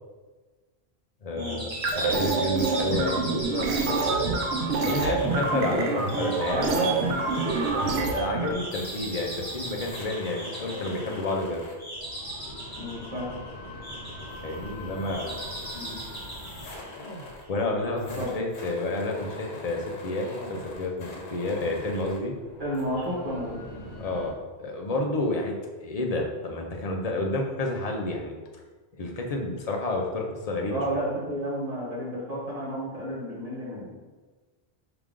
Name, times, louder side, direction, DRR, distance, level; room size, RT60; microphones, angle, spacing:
voice 1, 1.2-4.2 4.8-6.7 8.0-11.6 14.4-15.4 17.5-22.4 24.0-24.3 24.6-28.3 29.0-31.0, left 2 dB, 45° left, 1 dB, 0.6 m, -30 dB
sound 1, 1.4-17.5, right 1 dB, 20° left, 1.4 m, -39 dB
sound 2, 1.7-8.5, right 3 dB, 85° right, 0.9 m, -26 dB
sound 3, 4.9-24.3, left 1 dB, 85° left, 1.1 m, -42 dB
voice 2, 6.4-6.9 12.8-13.3 15.7-16.0 18.2-18.3 22.6-23.5 30.7-33.9, right 1 dB, 35° right, -7 dB, 1.5 m, -31 dB
4.8 x 3.0 x 3.6 m, 1.3 s
omnidirectional pair, 1.1 m